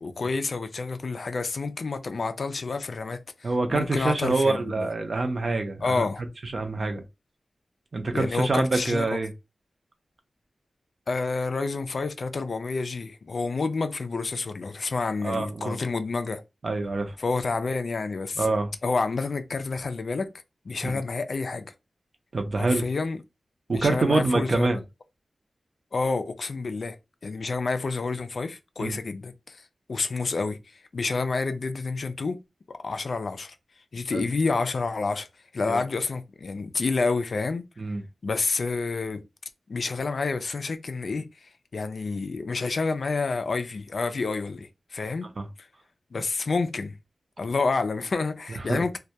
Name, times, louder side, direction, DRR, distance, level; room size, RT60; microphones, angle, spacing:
voice 1, 0.0-4.9 5.8-6.2 8.1-9.2 11.1-16.4 17.2-18.4 18.8-20.3 20.7-21.7 22.6-23.2 23.7-24.7 25.9-27.0 27.2-29.6 29.9-30.6 30.9-32.4 32.7-33.6 33.9-35.3 35.5-37.7 38.2-39.2 39.7-45.3 46.1-46.9 47.4-49.0, left 4 dB, 60° left, 0.3 m, -29 dB
voice 2, 3.4-6.0 6.4-7.0 7.9-9.3 15.2-15.8 16.6-17.2 18.4-18.7 20.8-21.0 22.3-22.8 23.7-24.8 28.8-29.0 34.1-34.3 35.7-35.8 37.8-38.0 45.2-45.5 48.6-48.8, right 3 dB, 50° right, 0.5 m, -26 dB
2.2 x 2.1 x 2.7 m
wide cardioid pair, 95°, 0 cm